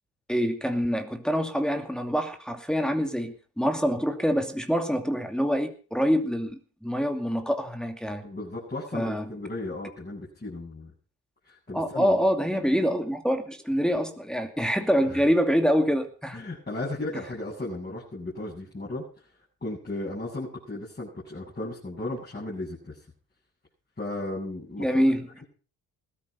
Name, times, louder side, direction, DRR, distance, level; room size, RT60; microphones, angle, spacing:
voice 1, 0.3-8.2 8.9-9.3 11.7-16.4 24.8-25.3, equal, ahead, 5 dB, 2.5 m, -25 dB
voice 2, 8.2-10.9 11.5-12.2 15.0-15.2 16.3-19.0 19.6-23.0 24.0-24.9, left 2 dB, 25° left, -5 dB, 7.9 m, -35 dB
17.0 x 13.0 x 5.5 m, 0.39 s
hypercardioid pair, 55°, 40 cm